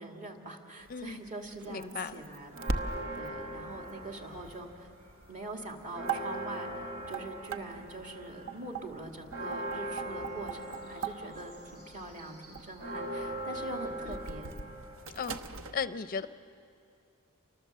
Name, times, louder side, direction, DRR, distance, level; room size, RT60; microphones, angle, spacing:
voice 1, 0.0-2.7 3.1-4.9 5.3-6.7 7.1-14.5, right 2 dB, 35° right, 2.5 m, -43 dB
sound 1, 0.8-15.7, right 4 dB, 65° right, 1.0 m, -42 dB
voice 2, 1.7-2.2 14.1-14.2 15.1-15.4 15.7-16.3, left 6 dB, 40° left, 0.5 m, -35 dB
Church bell, 2.5-4.9 5.2-5.3 5.7-15.7, right 1 dB, 85° right, 4.7 m, -41 dB
29.5 x 25.0 x 7.5 m
head